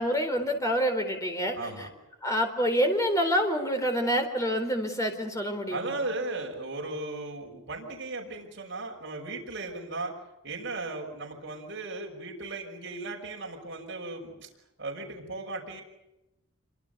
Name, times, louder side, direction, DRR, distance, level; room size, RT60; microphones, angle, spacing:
voice 1, 0.0-1.9 2.2-6.0, equal, 15° left, 5 dB, 4.2 m, -27 dB
voice 2, 1.5-1.9 5.7-10.1 10.4-14.5 14.8-15.8, right 2 dB, 55° right, 0 dB, 5.8 m, -36 dB
27.5 x 24.5 x 6.9 m, 0.93 s
head